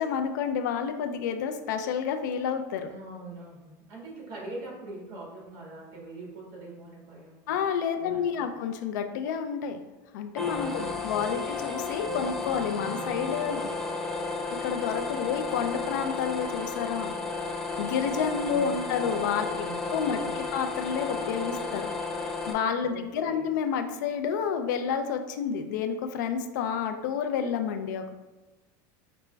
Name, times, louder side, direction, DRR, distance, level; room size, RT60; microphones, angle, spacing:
voice 1, 0.0-2.9 7.5-9.8 10.1-13.7 14.6-17.1 17.8-19.5 19.9-21.9 22.5-28.1, left 7 dB, 90° left, 7 dB, 0.4 m, -30 dB
voice 2, 2.9-7.5 8.0-8.5 10.7-11.0 18.4-19.2 19.5-20.6 22.9-23.5, right 2 dB, 50° right, -3 dB, 1.4 m, -43 dB
sound 1, 10.4-22.5, left 3 dB, 5° left, 0.3 m, -33 dB
5.0 x 2.2 x 3.2 m, 1.1 s
supercardioid pair, 155°, 10 cm